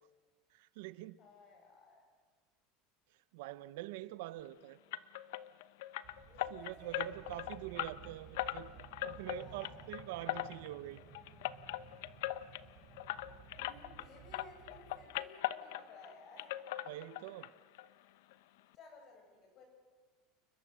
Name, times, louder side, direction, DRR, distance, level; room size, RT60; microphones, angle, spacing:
voice 1, 0.5-1.2 3.3-4.8 6.5-8.7 9.0-11.0 16.9-17.5, right 16 dB, 70° right, 1.0 m, -45 dB
voice 2, 1.2-2.0 6.2-7.2 7.5-7.8 9.3-9.9 12.7-16.6 18.7-19.6, left 3 dB, 30° left, 8.0 m, -58 dB
sound 1, 4.9-14.1 14.3-16.1 16.4-17.5 17.7-17.9 18.3-18.4 18.7-18.8, left 15 dB, 70° left, 0.9 m, -40 dB
sound 2, 6.0-15.1, right 9 dB, 30° right, 6.2 m, -56 dB
29.5 x 20.5 x 7.7 m
cardioid pair, 175°, 0 cm